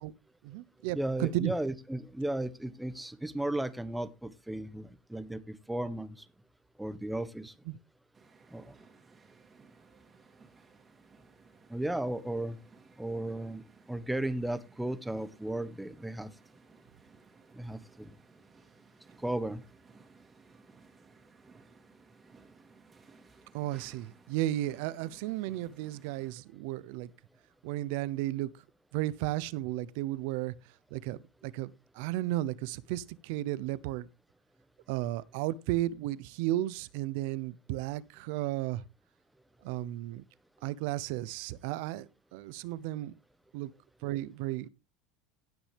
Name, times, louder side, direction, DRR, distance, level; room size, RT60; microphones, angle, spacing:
voice 1, 0.4-1.5 7.7-7.8 23.5-27.1 27.6-28.5 28.9-30.5 30.9-34.1 34.9-38.8 39.6-40.2 40.6-43.1 43.5-43.7 44.0-44.7, right 15 dB, 70° right, 0.7 m, -34 dB
voice 2, 0.9-6.2 6.8-7.5 8.5-8.7 11.7-12.6 13.0-13.6 13.9-16.3 17.5-18.1 19.2-19.6, right 1 dB, 5° right, 1.1 m, -35 dB
sound 1, 8.1-26.4, right 4 dB, 25° right, 2.6 m, -59 dB
17.5 x 6.1 x 3.3 m
supercardioid pair, 100°, 0 cm